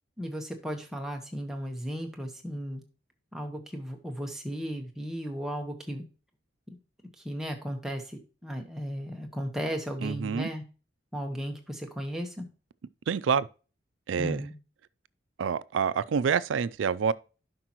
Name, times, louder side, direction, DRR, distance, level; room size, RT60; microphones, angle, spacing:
voice 1, 0.2-2.8 3.3-6.0 6.7-6.8 7.2-8.0 8.4-10.6 11.1-12.4 14.2-14.5, equal, ahead, 1.1 m, -35 dB
voice 2, 10.0-10.5 13.1-13.5 14.1-14.5 15.4-17.1, right 6 dB, 85° right, 0.4 m, -27 dB
11.5 x 5.4 x 3.0 m
head